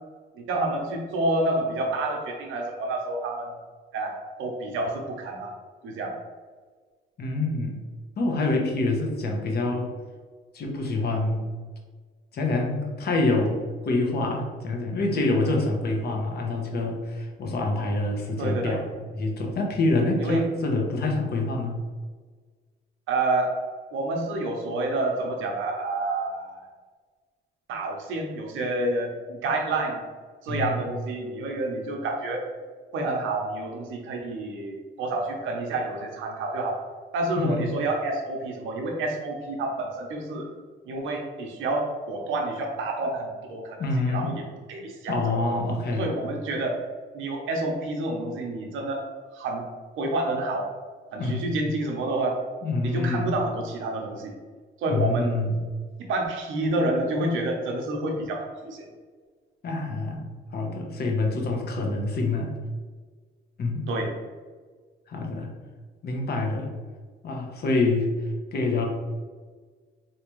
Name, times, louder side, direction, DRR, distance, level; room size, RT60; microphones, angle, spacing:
voice 1, 0.4-3.5 3.9-5.5 5.8-6.1 18.4-18.8 20.2-20.4 23.1-23.5 23.9-26.6 27.7-30.0 30.4-32.4 32.9-36.8 37.1-40.5 40.9-45.2 46.0-46.8 47.1-49.0 49.3-49.6 49.9-50.7 51.1-52.4 52.8-54.3 54.8-55.3 56.0-58.8 63.9-64.1, right 2 dB, 80° right, 1 dB, 0.7 m, -28 dB
voice 2, 7.2-7.8 8.2-9.9 10.5-11.5 12.3-18.9 19.1-21.8 30.5-30.8 37.3-37.6 43.8-44.4 45.1-46.1 51.2-51.5 52.6-53.4 54.9-55.6 59.6-60.2 60.5-62.5 63.6-63.9 65.1-65.5 66.0-66.7 67.2-68.1 68.5-68.9, left 2 dB, 55° left, 1 dB, 0.8 m, -26 dB
3.4 x 2.8 x 3.0 m, 1.5 s
cardioid pair, 90°, 20 cm